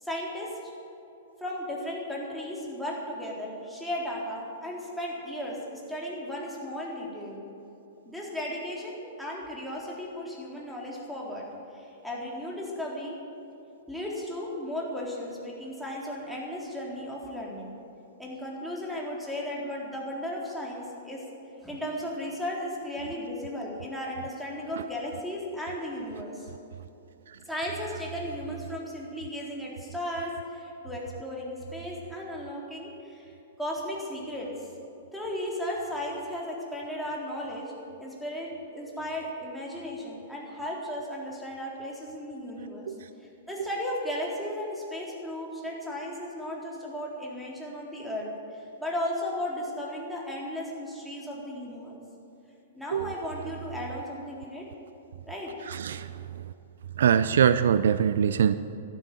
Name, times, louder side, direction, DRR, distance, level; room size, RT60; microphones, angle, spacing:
voice 1, 0.0-0.7 1.4-7.4 8.1-11.5 11.7-13.2 13.9-17.7 18.2-21.2 21.6-26.5 27.5-34.7 35.1-37.7 38.0-52.0 52.7-54.7 55.3-55.7, left 1 dB, ahead, -4 dB, 3.9 m, -35 dB
voice 2, 55.7-56.4 57.0-58.5, right 8 dB, 65° right, 13 dB, 0.5 m, -23 dB
12.5 x 12.0 x 9.2 m, 2.9 s
figure-of-eight pair, 110°, 0 cm